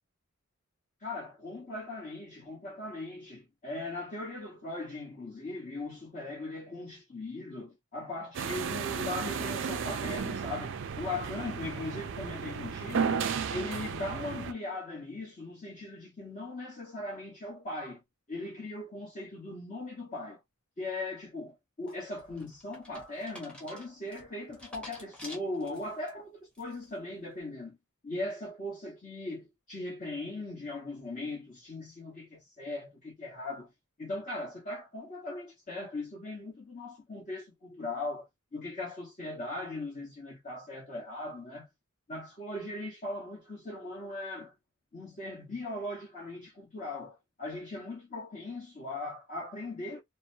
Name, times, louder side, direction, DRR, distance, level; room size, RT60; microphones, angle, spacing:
voice 1, 1.0-13.2 13.5-18.0 18.3-20.4 20.8-27.8 28.0-33.7 34.0-41.7 42.1-44.5 44.9-50.0, left 2 dB, 35° left, 1.1 m, -39 dB
sound 1, 8.3-14.5, right 6 dB, 55° right, 0.4 m, -34 dB
sound 2, 21.9-26.1 26.5-27.0, equal, 5° left, 0.9 m, -49 dB
2.8 x 2.1 x 2.7 m
head